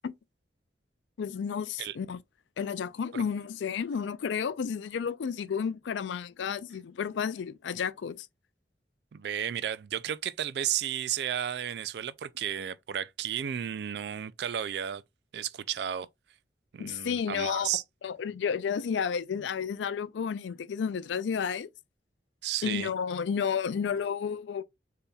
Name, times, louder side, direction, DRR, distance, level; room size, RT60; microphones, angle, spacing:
voice 1, 1.2-2.2 2.6-8.3 16.8-17.7 18.0-21.7 22.6-24.6, left 7 dB, 80° left, 0.4 m, -31 dB
voice 2, 9.1-15.0 15.3-16.1 16.7-17.8 22.4-22.9, right 10 dB, 65° right, 0.3 m, -33 dB
6.7 x 2.8 x 2.3 m
head